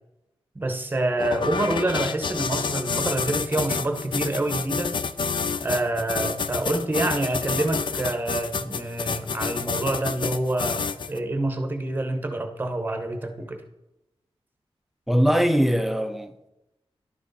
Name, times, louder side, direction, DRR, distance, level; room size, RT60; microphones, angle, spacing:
voice 1, 0.5-5.0 5.6-13.6, right 2 dB, 20° right, 1.0 m, -27 dB
sound 1, 1.2-11.2, left 5 dB, 55° left, 0.4 m, -29 dB
voice 2, 15.1-16.5, equal, ahead, 0.5 m, -21 dB
11.0 x 6.2 x 4.1 m
wide cardioid pair, 140°, 10 cm